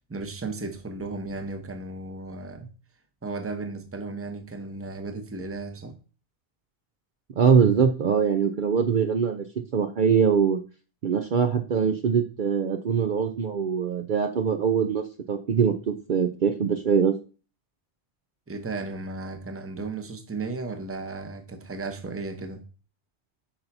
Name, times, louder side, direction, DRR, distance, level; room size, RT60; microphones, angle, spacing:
voice 1, 0.0-2.7 3.2-6.0 18.5-22.6, right 3 dB, 15° right, 0.7 m, -35 dB
voice 2, 7.4-9.5 9.7-10.6 11.0-17.1, right 6 dB, 55° right, 0.7 m, -23 dB
8.8 x 5.6 x 2.6 m
omnidirectional pair, 1.1 m